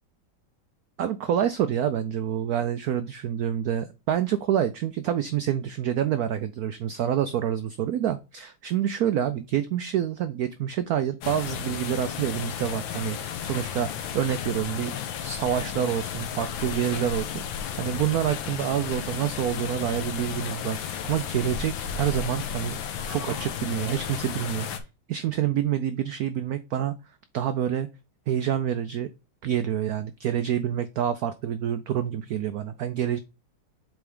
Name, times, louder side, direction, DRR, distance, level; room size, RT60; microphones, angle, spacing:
voice 1, 1.0-13.2 13.4-20.8 21.1-22.8 23.1-24.7 25.1-27.0 27.3-27.9 28.3-29.1 29.4-33.2, right 10 dB, 85° right, 11 dB, 0.8 m, -27 dB
sound 1, 11.2-24.8, left 8 dB, 80° left, 1.6 m, -33 dB
7.6 x 3.5 x 3.6 m, 0.28 s
omnidirectional pair, 2.2 m